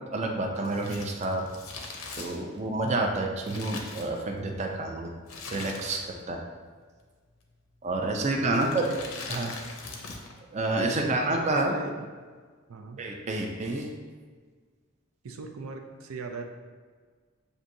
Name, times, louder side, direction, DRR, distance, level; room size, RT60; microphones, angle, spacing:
voice 1, 0.1-1.5 2.2-5.1 5.5-6.4 7.8-8.8 9.3-9.6 10.5-11.8 13.0-13.9, right 2 dB, 35° right, 2 dB, 0.4 m, -29 dB
Crumpling crinkling, 0.6-4.6 5.2-6.3 6.5-6.6 7.5-7.8 8.5-10.4 10.6-10.7, left 3 dB, 90° left, 0.7 m, -41 dB
voice 2, 8.5-9.0 10.8-12.1 12.7-13.0 15.2-16.4, right 3 dB, 90° right, 4 dB, 0.5 m, -38 dB
7.1 x 2.6 x 2.6 m, 1.5 s
head